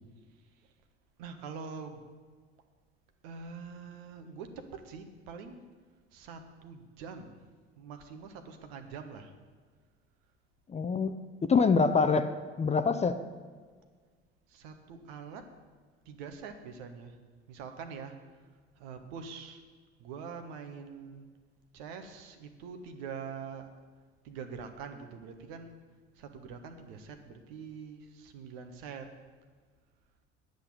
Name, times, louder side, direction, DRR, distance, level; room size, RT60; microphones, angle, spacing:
voice 1, 1.2-2.0 3.2-5.7 6.1-7.4 7.8-9.3 14.5-15.5 16.0-17.2 17.5-18.2 18.8-19.6 20.0-21.3 21.7-23.7 24.2-25.9 26.1-29.1, right 6 dB, 65° right, 7 dB, 1.3 m, -44 dB
voice 2, 10.7-12.3 12.6-13.2, left 4 dB, 20° left, 10 dB, 0.7 m, -25 dB
9.7 x 6.5 x 8.8 m, 1.5 s
figure-of-eight pair, 65°, 33 cm